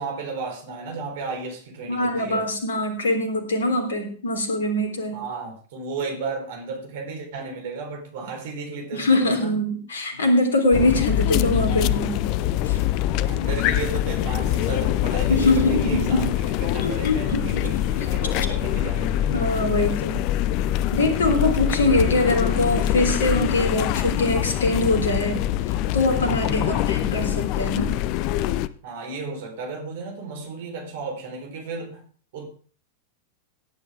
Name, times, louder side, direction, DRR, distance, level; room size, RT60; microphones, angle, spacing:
voice 1, 0.0-2.5 5.1-9.6 13.2-19.5 26.6-27.0 28.8-32.1 32.3-32.5, right 3 dB, 55° right, 4.2 m, -34 dB
voice 2, 1.9-5.2 8.9-12.3 12.6-12.8 15.3-16.3 16.8-17.7 19.3-20.2 20.9-25.4 25.9-27.9, left 1 dB, 65° left, 3.5 m, -23 dB
sound 1, 10.7-28.7, left 13 dB, 45° left, 0.6 m, -24 dB
17.5 x 10.0 x 3.7 m
figure-of-eight pair, 90°, 0 cm